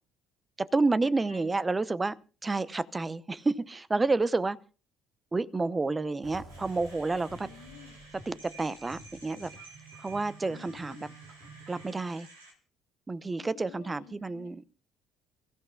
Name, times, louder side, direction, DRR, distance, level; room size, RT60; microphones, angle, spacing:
voice 1, 0.6-2.2 2.4-4.6 5.3-7.5 8.3-9.5 10.0-11.0 11.7-12.3 13.1-14.6, right 3 dB, 20° right, 0.7 m, -29 dB
sound 1, 6.2-12.0, right 3 dB, 65° right, 4.1 m, -51 dB
sound 2, 6.5-12.5, right 3 dB, 90° right, 2.5 m, -53 dB
voice 2, 7.4-8.0 10.4-11.1 13.4-14.6, left 11 dB, 75° left, 1.4 m, -52 dB
28.0 x 14.5 x 2.3 m
hypercardioid pair, 55°, 0 cm